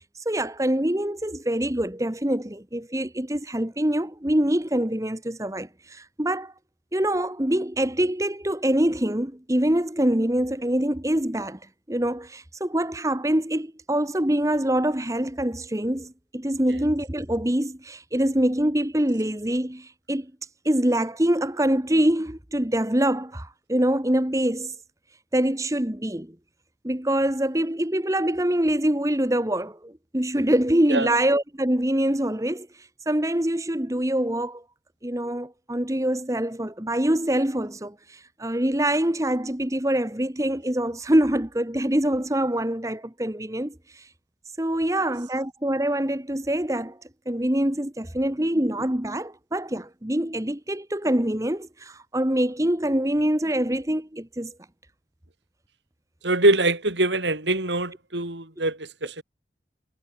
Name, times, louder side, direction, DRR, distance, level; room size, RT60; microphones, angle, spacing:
voice 1, 0.1-6.5 6.9-11.6 11.9-20.3 20.6-24.8 25.3-26.3 26.8-34.6 35.0-44.1 44.6-47.0 47.2-54.5, right 1 dB, 20° right, 1.4 m, -25 dB
voice 2, 56.2-59.2, right 2 dB, 85° right, 5.3 m, -23 dB
head